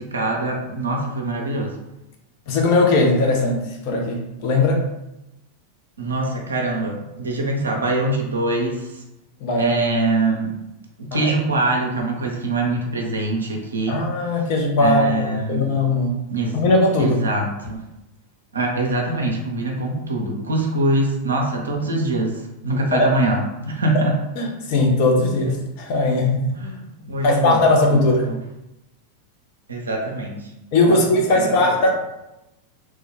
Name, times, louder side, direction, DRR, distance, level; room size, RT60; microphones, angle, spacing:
voice 1, 0.0-1.8 6.0-8.9 9.6-10.5 11.0-14.0 14.8-15.7 16.3-16.6 17.0-17.8 18.5-24.2 26.6-27.7 27.9-28.4 29.7-30.5 30.9-31.8, right 2 dB, 75° right, 0 dB, 0.5 m, -24 dB
voice 2, 2.5-4.8 9.4-9.8 11.1-11.3 13.9-16.2 16.5-17.2 22.9-23.1 23.9-24.0 24.4-26.4 27.2-28.3 30.7-31.9, left 2 dB, 45° left, 1 dB, 0.6 m, -19 dB
3.2 x 2.2 x 3.3 m, 0.90 s
figure-of-eight pair, 90°, 0 cm